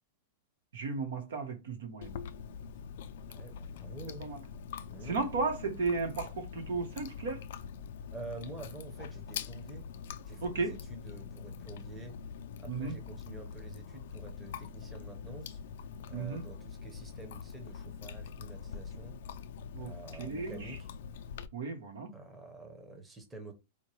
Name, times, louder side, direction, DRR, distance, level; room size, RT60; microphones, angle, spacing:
voice 1, 0.7-2.1 4.2-4.4 5.0-7.4 10.4-10.7 12.7-12.9 16.1-16.4 19.7-19.9 20.2-20.8 21.5-22.1, right 4 dB, 85° right, 1.1 m, -34 dB
Chewing mastication, 2.0-21.5, left 7 dB, 65° left, 0.3 m, -44 dB
voice 2, 3.3-4.3 4.9-5.2 8.1-9.8 10.2-12.1 12.6-15.6 16.1-19.2 19.8-20.9 22.1-23.5, right 2 dB, 10° right, 0.8 m, -48 dB
4.4 x 2.2 x 3.0 m
supercardioid pair, 155°, 0 cm